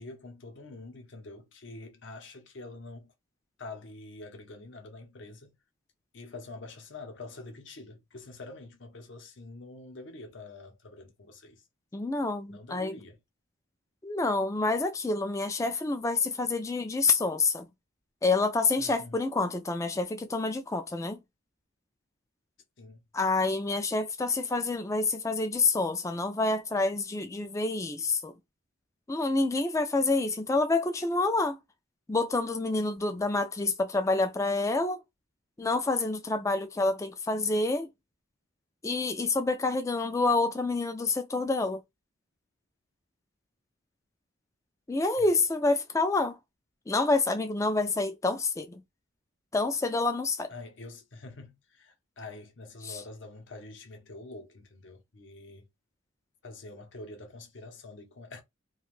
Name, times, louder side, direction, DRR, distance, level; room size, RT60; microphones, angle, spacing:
voice 1, 0.0-3.1 3.6-5.5 6.1-11.6 12.5-13.2 18.8-19.2 22.8-23.0 45.2-45.3 50.5-55.7 56.4-58.4, left 2 dB, 60° left, 0.7 m, -46 dB
voice 2, 11.9-12.9 14.0-17.7 18.2-21.2 23.1-28.3 29.1-31.6 32.1-35.0 35.6-37.9 38.8-41.8 44.9-46.4 46.9-48.8 49.5-50.5 52.8-53.0, left 3 dB, 15° left, 0.3 m, -28 dB
2.5 x 2.3 x 3.1 m
head